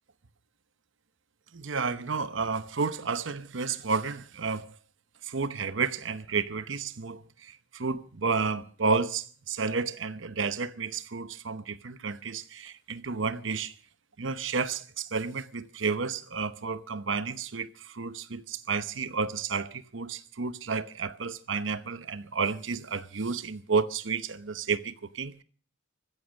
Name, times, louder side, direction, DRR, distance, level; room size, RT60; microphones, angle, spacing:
voice 1, 1.5-4.8 5.2-13.7 14.2-25.4, right 5 dB, 90° right, 0.9 m, -31 dB
15.0 x 15.0 x 6.4 m
head